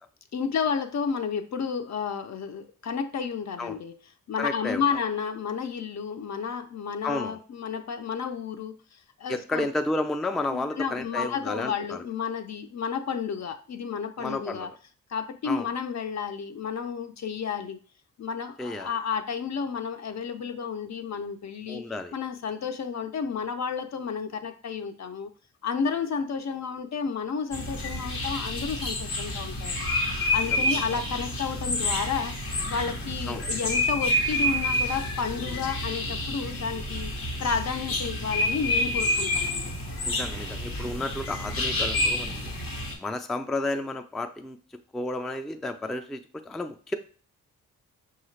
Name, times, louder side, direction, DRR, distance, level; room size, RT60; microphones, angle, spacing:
voice 1, 0.3-3.9 4.3-9.7 10.5-14.7 15.1-17.8 18.2-21.8 22.1-25.3 25.6-29.7 30.3-32.4 32.7-37.1 37.4-39.7, left 6 dB, 50° left, 0.5 m, -31 dB
voice 2, 4.4-4.8 7.0-7.4 9.3-12.0 14.2-14.7 15.4-15.7 18.6-18.9 21.7-22.1 30.5-31.0 33.3-33.5 40.0-42.6 43.0-44.6 44.9-46.9, left 2 dB, ahead, 0.3 m, -32 dB
sound 1, 27.5-42.9, left 1 dB, 85° left, 1.0 m, -29 dB
5.4 x 2.4 x 3.1 m
cardioid pair, 55°, 34 cm